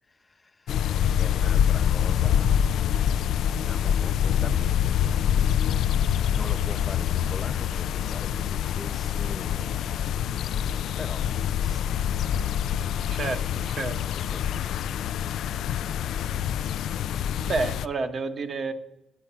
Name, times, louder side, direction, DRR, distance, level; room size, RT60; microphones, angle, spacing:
voice 1, 0.1-3.3 3.6-5.9 6.3-12.5 14.1-15.0, left 3 dB, 25° left, 11 dB, 0.5 m, -43 dB
sound 1, 0.7-17.9, left 9 dB, 75° left, 0.3 m, -25 dB
voice 2, 13.1-14.0 17.4-18.7, right 4 dB, 45° right, 8 dB, 1.0 m, -30 dB
9.4 x 7.7 x 5.7 m, 0.84 s
cardioid pair, 90°, 0 cm